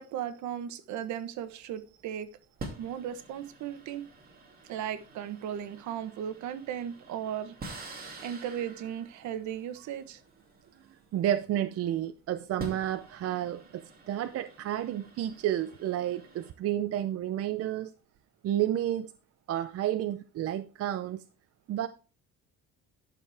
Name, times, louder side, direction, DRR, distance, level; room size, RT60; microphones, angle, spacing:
voice 1, 0.0-2.3 2.8-4.1 4.7-7.6 8.2-10.2, right 9 dB, 65° right, 1.1 m, -36 dB
sound 1, 1.4-1.6 2.6-11.6 12.4-16.5, right 2 dB, 30° right, 2.6 m, -47 dB
voice 2, 11.1-17.9 18.4-19.1 19.5-21.2 21.7-21.9, right 12 dB, 50° right, 0.6 m, -31 dB
11.5 x 6.7 x 3.4 m
cardioid pair, 140°, 31 cm